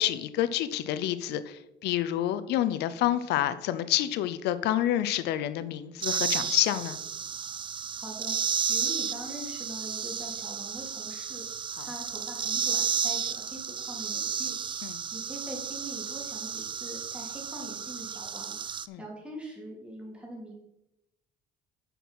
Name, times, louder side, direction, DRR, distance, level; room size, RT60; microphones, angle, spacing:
voice 1, 0.0-7.0 11.8-11.9 14.8-14.9 18.9-19.0, left 12 dB, 80° left, 13 dB, 0.6 m, -28 dB
sound 1, 6.0-18.9, right 7 dB, 30° right, 0.4 m, -32 dB
voice 2, 7.9-8.4 8.7-11.5 11.8-20.5, equal, 5° right, -2 dB, 3.5 m, -43 dB
9.1 x 6.1 x 5.6 m, 0.88 s
cardioid pair, 110°, 17 cm